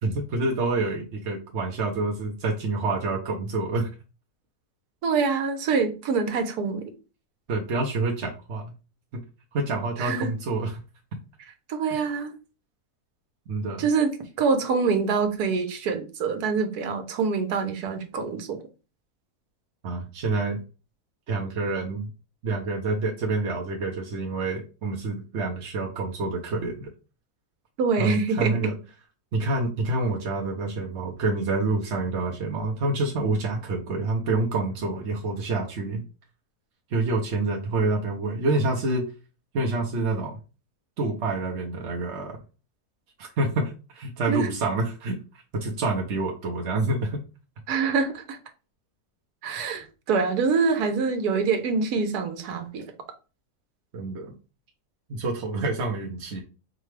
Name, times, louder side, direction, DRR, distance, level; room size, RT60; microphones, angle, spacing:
voice 1, 0.0-3.9 7.5-8.7 9.1-9.2 9.5-10.8 13.5-13.9 19.8-20.6 21.3-22.1 22.4-26.9 28.0-28.7 29.3-36.0 36.9-39.0 39.5-40.4 41.0-42.4 43.2-45.2 45.5-47.2 53.9-54.3 55.1-56.4, right 3 dB, 55° right, 0.8 m, -27 dB
voice 2, 5.0-6.9 10.0-10.3 11.7-12.3 13.8-14.1 14.4-18.6 27.8-28.6 44.3-44.5 47.7-48.4 49.4-52.8, right 5 dB, 80° right, 1.3 m, -25 dB
4.9 x 2.3 x 3.2 m
omnidirectional pair, 1.6 m